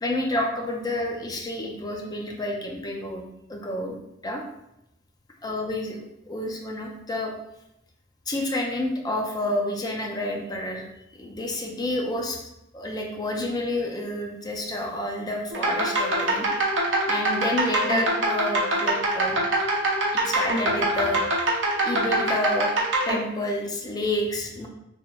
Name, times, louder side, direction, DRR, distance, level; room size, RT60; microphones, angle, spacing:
voice 1, 0.0-3.2 3.5-4.0 4.2-4.4 5.4-7.3 8.3-10.8 11.1-16.5 17.1-19.4 20.1-21.3 21.8-22.7 23.1-24.7, left 1 dB, 20° left, 1 dB, 0.4 m, -29 dB
sound 1, 15.5-23.2, right 1 dB, 75° right, 0.6 m, -24 dB
2.9 x 2.4 x 2.3 m, 0.84 s
head